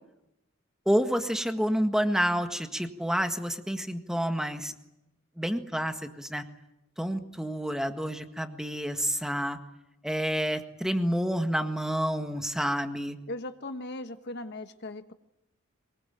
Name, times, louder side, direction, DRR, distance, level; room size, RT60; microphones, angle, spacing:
voice 1, 0.8-4.7 5.4-6.4 7.0-9.6 10.0-13.2, equal, 5° right, 7 dB, 1.7 m, -29 dB
voice 2, 13.3-15.1, left 2 dB, 55° left, 9 dB, 1.3 m, -38 dB
23.5 x 22.0 x 9.2 m, 0.87 s
head